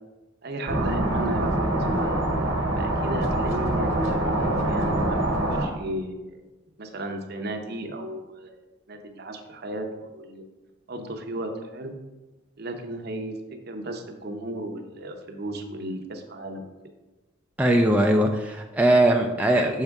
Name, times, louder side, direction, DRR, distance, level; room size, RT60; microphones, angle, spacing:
voice 1, 0.4-2.2 2.8-5.2 5.5-6.4 6.8-8.6 8.9-10.4 10.9-11.9 12.6-16.7, right 1 dB, 50° right, 5 dB, 0.8 m, -35 dB
sound 1, 0.7-5.7, right 1 dB, 80° right, 1.2 m, -24 dB
voice 2, 17.6-19.8, right 1 dB, 5° right, 1 dB, 0.3 m, -20 dB
6.5 x 5.4 x 3.5 m, 1.1 s
head